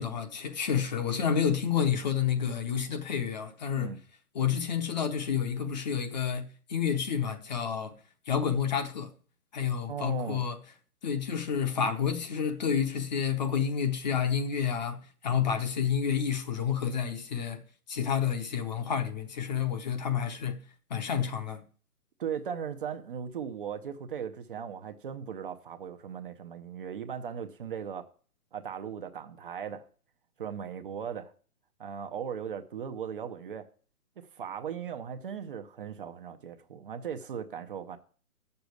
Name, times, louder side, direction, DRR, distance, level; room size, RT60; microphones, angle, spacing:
voice 1, 0.0-3.9 4.3-7.9 8.3-9.1 9.5-10.6 11.0-17.6 17.9-20.6 20.9-21.6, left 7 dB, 30° left, 0.9 m, -29 dB
voice 2, 9.9-10.4 22.2-28.1 28.5-29.8 30.4-31.3 31.8-33.7 34.2-38.0, right 7 dB, 35° right, 0.8 m, -38 dB
7.7 x 6.9 x 8.1 m
hypercardioid pair, 150°, 45 cm